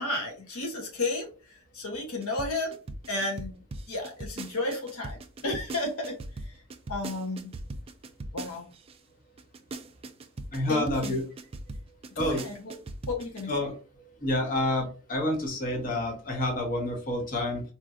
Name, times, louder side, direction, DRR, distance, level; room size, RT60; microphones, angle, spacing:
voice 1, 0.0-2.8 3.1-6.6 6.9-7.5 8.3-8.7 10.7-11.2 12.1-12.7 13.1-13.5, left 2 dB, 75° left, 1 dB, 0.8 m, -33 dB
sound 1, 2.2-8.9 9.4-13.4, right 2 dB, 25° right, 0.3 m, -39 dB
voice 2, 10.5-11.2 12.2-12.4 13.5-13.7 14.2-17.6, left 1 dB, 40° left, 1 dB, 1.0 m, -28 dB
4.2 x 2.4 x 2.4 m, 0.35 s
head